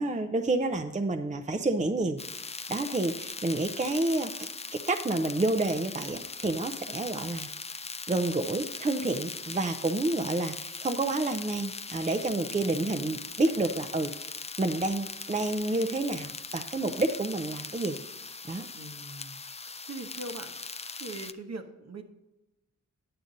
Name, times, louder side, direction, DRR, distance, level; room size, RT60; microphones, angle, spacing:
voice 1, 0.0-2.2 2.7-7.5 8.1-14.1 14.6-18.0 18.5-18.7, right 2 dB, 25° right, 6 dB, 0.6 m, -29 dB
sound 1, 2.2-21.3, left 4 dB, 20° left, 0.4 m, -40 dB
voice 2, 18.7-19.4 19.8-20.6 21.0-22.0, right 2 dB, 55° right, 5 dB, 1.1 m, -41 dB
9.4 x 6.8 x 3.9 m, 1.0 s
wide cardioid pair, 70°, 31 cm